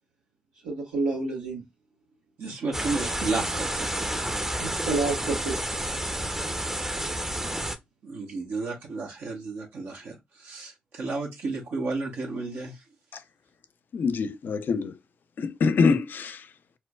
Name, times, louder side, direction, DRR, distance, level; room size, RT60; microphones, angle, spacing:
voice 1, 0.6-1.6 4.6-5.6 5.9-6.1, right 3 dB, 90° right, 1.2 m, -29 dB
voice 2, 2.4-4.3 8.0-12.8, right 3 dB, 70° right, 0.8 m, -33 dB
sound 1, 2.7-7.8, right 1 dB, 15° right, 0.6 m, -30 dB
voice 3, 13.9-14.9 15.4-16.5, left 5 dB, 65° left, 0.4 m, -24 dB
4.3 x 2.1 x 2.2 m
hypercardioid pair, 40°, 4 cm